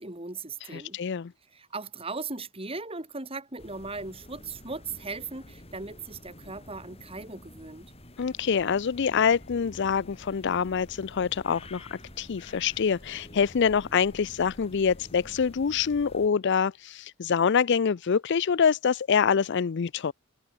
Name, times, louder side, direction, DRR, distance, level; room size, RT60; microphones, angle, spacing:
voice 1, 0.0-1.0 1.5-7.9, right 3 dB, 25° right, 3.0 m, -38 dB
voice 2, 0.7-1.3 8.2-20.1, left 6 dB, 55° left, 0.4 m, -25 dB
sound 1, 3.6-16.3, left 1 dB, 30° left, 7.3 m, -49 dB
head